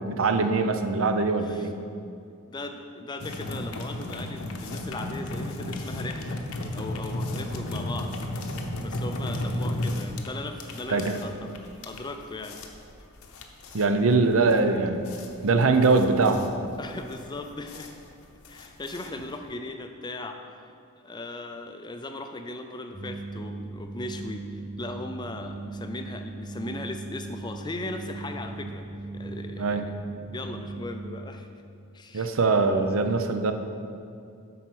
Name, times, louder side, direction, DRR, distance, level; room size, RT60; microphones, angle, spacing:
voice 1, 0.0-1.7 10.9-11.2 13.7-15.1 15.4-16.5 29.6-29.8 32.1-33.5, right 3 dB, 60° right, 7 dB, 0.6 m, -22 dB
voice 2, 2.4-6.4 6.7-8.1 8.8-11.5 11.8-12.6 16.8-18.0 18.5-30.0 30.3-31.5 31.9-32.3 32.7-33.0, left 2 dB, 20° left, 6 dB, 0.4 m, -38 dB
sound 1, 3.2-19.5, left 1 dB, 70° left, 0.9 m, -34 dB
sound 2, 22.9-31.3, right 2 dB, 5° left, 1.1 m, -38 dB
8.3 x 5.6 x 6.2 m, 2.5 s
head